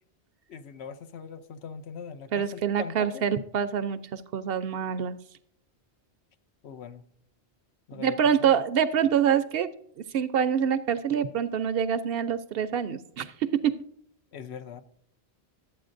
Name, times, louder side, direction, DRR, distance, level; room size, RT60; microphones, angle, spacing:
voice 1, 0.5-3.2 6.6-7.0 7.9-8.6 14.3-14.8, left 7 dB, 75° left, 0.9 m, -41 dB
voice 2, 2.3-5.2 7.9-9.7 10.1-13.8, right 8 dB, 65° right, 0.7 m, -26 dB
12.5 x 8.5 x 2.5 m
omnidirectional pair, 1.1 m